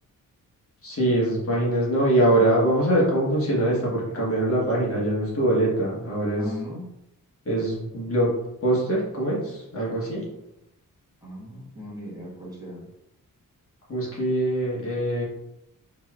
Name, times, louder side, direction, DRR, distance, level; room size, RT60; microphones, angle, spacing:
voice 1, 0.8-6.5 7.4-8.3 8.6-10.2 13.9-15.2, right 1 dB, 40° left, -5 dB, 1.3 m, -23 dB
voice 2, 6.4-6.8 11.2-12.8, left 1 dB, 10° right, -6 dB, 1.2 m, -38 dB
5.3 x 3.0 x 2.4 m, 0.85 s
wide cardioid pair, 160°, 34 cm